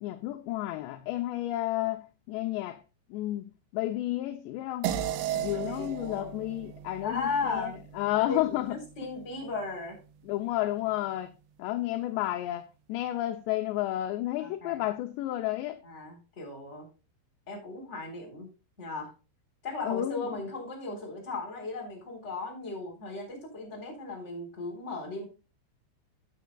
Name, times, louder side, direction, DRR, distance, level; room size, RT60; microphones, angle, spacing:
voice 1, 0.0-2.8 3.1-5.0 5.3-8.8 10.2-11.3 11.6-15.8 19.8-20.3, left 15 dB, 80° left, 2.6 m, -31 dB
sound 1, 4.8-9.6, right 10 dB, 75° right, 2.9 m, -36 dB
voice 2, 5.5-6.3 7.0-7.8 8.1-10.0 14.4-14.8 15.8-16.9 17.5-18.5 18.8-19.1 19.6-25.2, left 3 dB, 15° left, 3.0 m, -36 dB
14.0 x 8.1 x 2.3 m
omnidirectional pair, 5.6 m